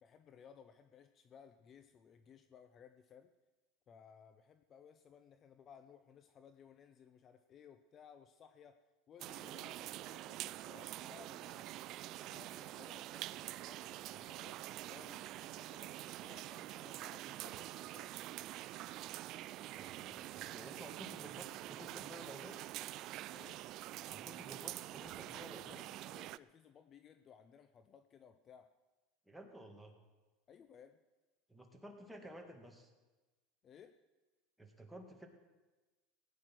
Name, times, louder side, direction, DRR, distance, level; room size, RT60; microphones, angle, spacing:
voice 1, 0.0-3.3 3.9-8.8 9.1-11.7 12.2-14.6 14.9-18.2 23.3-23.6 26.1-28.7 30.5-31.0 33.6-33.9, left 7 dB, 35° left, 10 dB, 0.6 m, -60 dB
sound 1, 9.2-26.4, right 15 dB, 50° right, 0.4 m, -46 dB
voice 2, 19.7-22.6 24.1-25.9 29.3-29.9 31.5-32.9 34.6-35.3, right 1 dB, 5° right, 2 dB, 2.1 m, -53 dB
17.5 x 9.7 x 6.1 m, 1.2 s
supercardioid pair, 125°, 0 cm